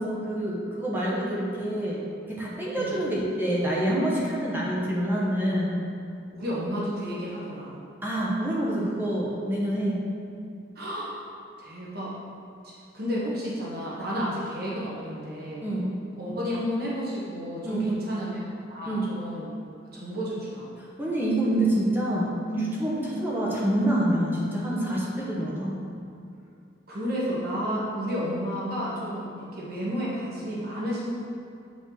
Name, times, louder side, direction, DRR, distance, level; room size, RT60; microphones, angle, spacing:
voice 1, 0.0-5.8 8.0-10.0 14.1-14.3 15.6-15.9 17.6-18.0 18.9-19.1 20.8-25.8, right 1 dB, 10° right, -5 dB, 1.1 m, -27 dB
voice 2, 6.3-7.8 10.7-11.2 11.6-12.2 12.6-15.7 16.2-19.5 19.9-20.7 23.0-23.2 26.9-31.1, equal, 55° right, -6 dB, 1.3 m, -32 dB
7.5 x 5.2 x 4.0 m, 2.5 s
head